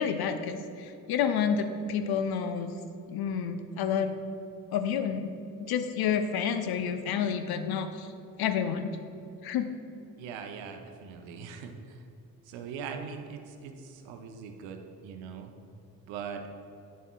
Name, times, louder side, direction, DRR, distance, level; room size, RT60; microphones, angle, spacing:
voice 1, 0.0-2.7 3.1-4.1 4.7-5.3 5.6-8.1 8.4-8.9 9.4-9.7, left 7 dB, 50° left, 8 dB, 0.6 m, -29 dB
voice 2, 10.2-12.0 12.4-15.5 16.1-16.5, right 6 dB, 65° right, 5 dB, 0.8 m, -41 dB
9.4 x 7.1 x 2.3 m, 2.7 s
figure-of-eight pair, 40°, 49 cm